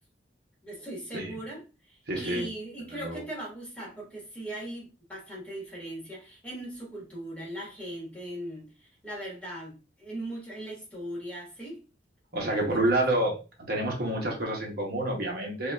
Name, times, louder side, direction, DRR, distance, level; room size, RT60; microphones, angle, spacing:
voice 1, 0.6-11.8 12.5-12.9, right 1 dB, 5° left, 1.3 m, -39 dB
voice 2, 2.1-2.5 3.0-3.2 12.3-13.4 13.7-15.7, right 1 dB, 55° right, 0.8 m, -28 dB
5.3 x 2.2 x 2.3 m
head